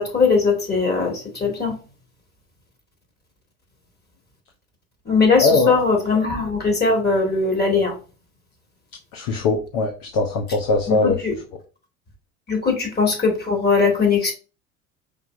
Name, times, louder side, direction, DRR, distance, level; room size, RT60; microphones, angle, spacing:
voice 1, 0.0-1.8 5.1-7.9 10.9-11.3 12.5-14.3, left 4 dB, 25° left, 1 dB, 2.0 m, -20 dB
voice 2, 5.4-5.8 9.1-11.2, left 3 dB, 55° left, 2 dB, 1.0 m, -21 dB
5.1 x 3.2 x 2.5 m, 0.34 s
hypercardioid pair, 70°, 41 cm